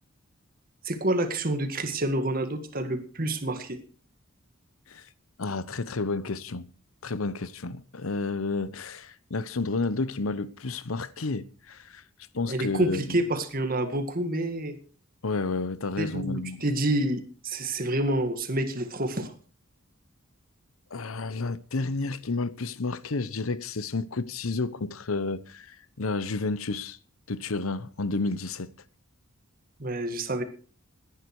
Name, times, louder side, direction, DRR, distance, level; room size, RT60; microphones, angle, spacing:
voice 1, 0.8-3.8 12.5-14.8 16.0-19.3 29.8-30.4, right 1 dB, 45° right, 1.9 m, -28 dB
voice 2, 5.4-6.7 7.0-12.0 12.3-13.2 15.2-16.6 20.9-27.0 27.3-28.7, left 3 dB, 80° left, 0.9 m, -31 dB
17.5 x 10.5 x 4.8 m
head